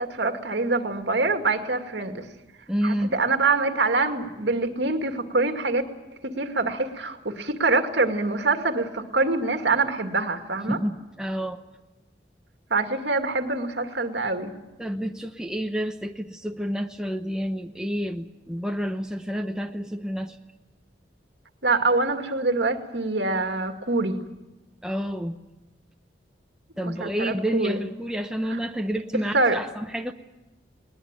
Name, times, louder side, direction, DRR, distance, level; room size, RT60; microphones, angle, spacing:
voice 1, 0.0-2.2 2.8-5.8 6.2-10.8 12.7-14.5 21.6-24.2 26.8-27.8 29.3-29.6, right 3 dB, 70° right, 6 dB, 2.2 m, -25 dB
voice 2, 2.7-3.2 10.7-11.6 14.8-20.4 24.8-25.4 26.8-30.1, equal, 5° right, 4 dB, 0.8 m, -29 dB
21.0 x 19.5 x 8.9 m, 1.1 s
head